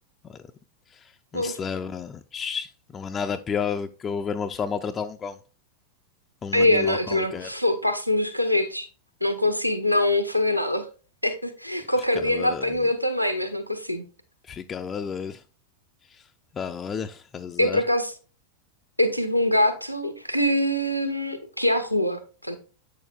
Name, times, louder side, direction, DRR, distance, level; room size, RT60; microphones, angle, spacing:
voice 1, 0.9-5.4 6.4-7.5 12.2-12.8 14.4-15.4 16.1-16.3 16.5-17.8, left 6 dB, 20° left, 0.4 m, -32 dB
voice 2, 6.5-8.9 9.2-10.9 11.2-14.0 17.6-18.1 19.0-22.6, left 1 dB, 90° left, 0.7 m, -24 dB
8.2 x 6.5 x 2.3 m
figure-of-eight pair, 90°, 0 cm